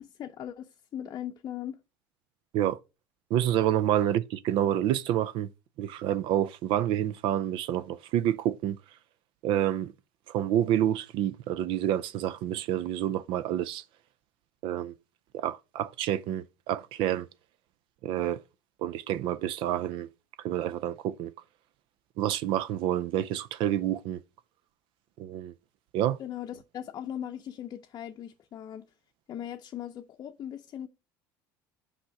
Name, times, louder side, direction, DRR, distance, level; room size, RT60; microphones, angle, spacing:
voice 1, 0.0-1.8 26.2-28.9 29.3-30.9, left 10 dB, 45° left, 0.6 m, -39 dB
voice 2, 3.3-5.5 5.8-8.8 9.4-9.9 10.3-13.8 14.6-14.9 15.3-17.3 18.0-18.4 18.8-20.1 20.4-21.3 22.2-24.2 25.2-25.5 25.9-26.2, right 11 dB, 65° right, 0.5 m, -28 dB
6.1 x 5.0 x 5.7 m
supercardioid pair, 100°, 9 cm